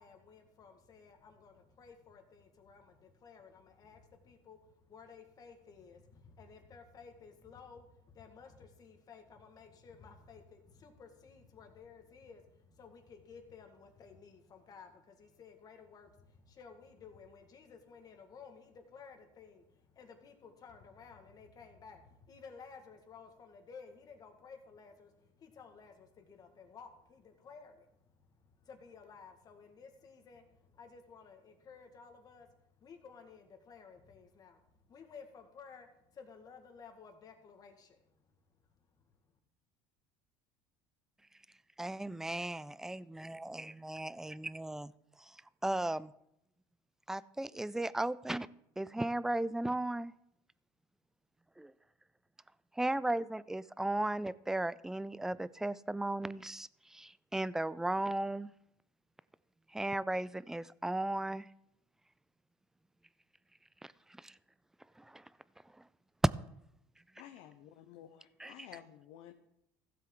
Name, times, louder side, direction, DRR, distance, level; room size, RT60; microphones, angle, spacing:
voice 1, 0.0-34.6 34.9-38.0, left 5 dB, 40° left, 5 dB, 1.9 m, -55 dB
voice 2, 41.8-44.9 45.6-46.1 47.1-48.5 48.8-50.1 52.8-58.5 59.7-61.5 63.8-63.9 64.2-64.3 65.0-65.2 68.4-68.5, right 1 dB, 5° right, 19 dB, 0.3 m, -36 dB
voice 3, 67.2-69.3, left 11 dB, 75° left, 6 dB, 0.8 m, -53 dB
15.5 x 7.5 x 3.9 m, 0.81 s
supercardioid pair, 110°, 10 cm